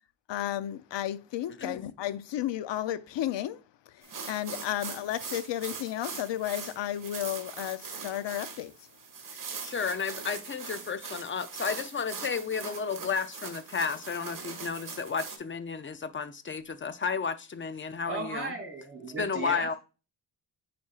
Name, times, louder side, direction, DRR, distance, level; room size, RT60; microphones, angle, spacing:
voice 1, 0.3-8.9, left 12 dB, 75° left, 0.6 m, -33 dB
sound 1, 4.0-15.4, right 5 dB, 45° right, 1.4 m, -41 dB
voice 2, 9.3-18.5 19.2-19.7, left 5 dB, 30° left, 0.5 m, -33 dB
voice 3, 18.1-19.8, right 3 dB, 30° right, 2.8 m, -36 dB
9.4 x 4.3 x 2.4 m
wide cardioid pair, 155°, 44 cm